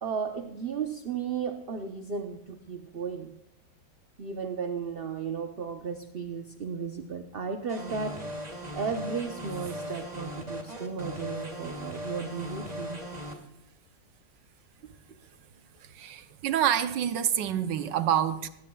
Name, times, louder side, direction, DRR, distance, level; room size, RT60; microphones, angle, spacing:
voice 1, 0.0-3.3 4.2-8.3 8.7-13.0, right 6 dB, 45° right, 0.8 m, -34 dB
sound 1, 7.7-13.3, equal, 20° right, 2.7 m, -38 dB
voice 2, 15.8-18.5, right 10 dB, 75° right, 1.4 m, -27 dB
20.5 x 16.5 x 2.3 m
omnidirectional pair, 2.0 m